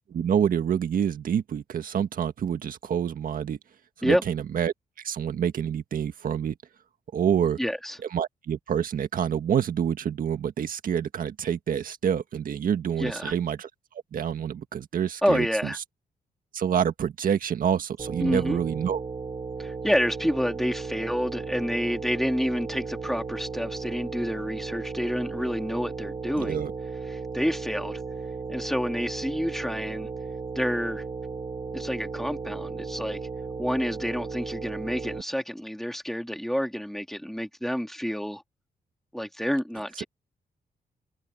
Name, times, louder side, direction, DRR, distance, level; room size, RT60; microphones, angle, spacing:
voice 1, 0.1-3.6 4.0-6.5 7.1-7.6 8.1-13.7 14.1-15.5 16.5-19.0 26.4-26.7, right 8 dB, 65° right, 1.7 m, -27 dB
voice 2, 7.6-8.0 13.0-13.3 15.2-15.8 18.2-18.6 19.6-26.6 27.1-28.0 28.5-30.1 30.5-31.0 31.7-33.2 33.6-38.4 39.1-40.0, equal, ahead, 3.3 m, -28 dB
sound 1, 18.0-35.2, right 4 dB, 35° right, 1.8 m, -35 dB
cardioid pair, 95°, 15 cm